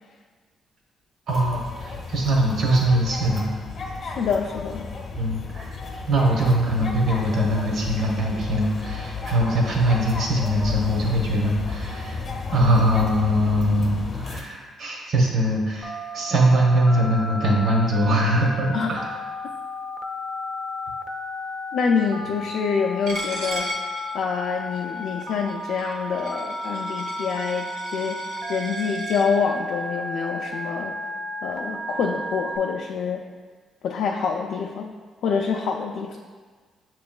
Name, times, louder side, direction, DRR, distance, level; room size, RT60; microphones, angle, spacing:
sound 1, 1.3-14.4, left 4 dB, 50° left, 0.7 m, -33 dB
voice 1, 1.3-3.5 5.1-5.8 6.1-12.2 12.5-19.1, right 1 dB, 65° right, -1 dB, 1.0 m, -22 dB
voice 2, 4.0-4.9 18.7-18.9 21.7-23.7 24.1-30.9 31.4-33.3 33.8-36.2, left 6 dB, 75° left, 1 dB, 0.3 m, -26 dB
Telephone, 15.8-32.6, equal, 10° left, 0.5 m, -33 dB
Coin (dropping), 23.1-29.2, right 1 dB, 90° right, 0.9 m, -36 dB
6.8 x 3.0 x 2.2 m, 1.5 s
cardioid pair, 90°, 0 cm